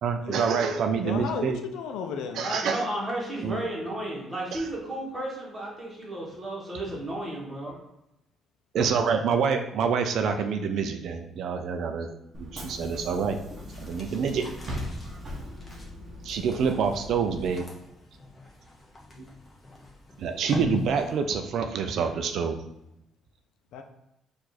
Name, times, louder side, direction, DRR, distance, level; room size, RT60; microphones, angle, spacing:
voice 1, 0.0-1.6 2.4-2.9 3.4-3.6 8.7-12.1 12.4-13.4 13.8-14.8 16.2-17.6 20.2-22.6, right 6 dB, 60° right, 6 dB, 0.4 m, -27 dB
voice 2, 1.0-2.6 23.7-23.8, left 6 dB, 85° left, 5 dB, 0.5 m, -34 dB
voice 3, 2.3-7.8, right 1 dB, 10° right, -4 dB, 1.3 m, -33 dB
Bus / Engine, 12.3-17.5, left 1 dB, 30° right, 0.8 m, -39 dB
sound 1, 13.7-21.4, left 2 dB, 20° left, 0.7 m, -41 dB
4.7 x 2.5 x 4.1 m, 0.86 s
cardioid pair, 160°, 0 cm